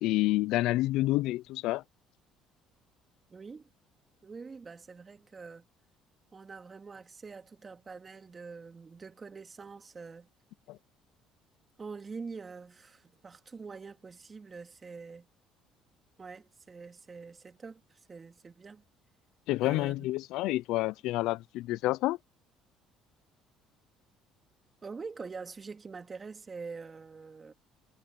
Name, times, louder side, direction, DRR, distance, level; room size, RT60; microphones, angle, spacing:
voice 1, 0.0-1.8 10.7-10.8 19.5-22.2, left 17 dB, 75° left, 0.6 m, -28 dB
voice 2, 3.3-3.7 4.2-5.7 6.3-10.3 11.8-15.3 16.2-18.8 19.6-20.1 24.8-27.5, right 4 dB, 30° right, 3.1 m, -45 dB
supercardioid pair, 90°, 0 cm